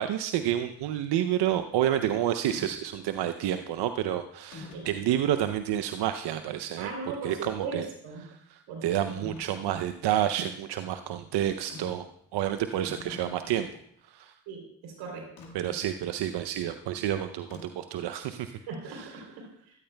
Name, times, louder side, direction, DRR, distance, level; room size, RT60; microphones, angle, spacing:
voice 1, 0.0-6.9 7.2-7.8 8.3-12.1 12.3-13.7 14.1-14.3 15.5-18.5 18.9-19.1, right 11 dB, 65° right, 9 dB, 0.7 m, -29 dB
sound 1, 2.5-2.7 3.6-3.8 4.5-5.0 5.7-5.8 9.1-9.5 11.7-12.1 12.4-12.5 12.7-13.8 15.4-15.5 17.5-17.9, left 3 dB, 85° left, 1.9 m, -45 dB
voice 2, 6.8-8.2 8.7-9.1 14.5-15.2 15.7-15.8 18.7-19.8, right 4 dB, 85° right, 2 dB, 3.3 m, -38 dB
14.5 x 13.0 x 2.2 m, 0.72 s
supercardioid pair, 55°, 45 cm